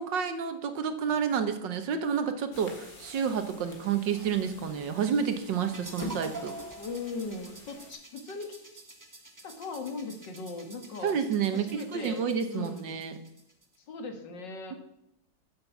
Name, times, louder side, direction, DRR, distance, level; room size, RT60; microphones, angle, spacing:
voice 1, 0.0-6.5 11.0-13.2, right 7 dB, 85° right, 8 dB, 1.8 m, -30 dB
sound 1, 2.5-7.9, left 1 dB, 55° left, 2.2 m, -46 dB
sound 2, 5.7-13.8, right 2 dB, 15° right, 0.9 m, -47 dB
voice 2, 6.8-8.7 9.4-11.2 11.5-12.2 12.5-12.9 13.9-14.8, left 4 dB, 75° left, 5 dB, 2.2 m, -39 dB
9.5 x 7.6 x 7.2 m, 0.79 s
omnidirectional pair, 1.9 m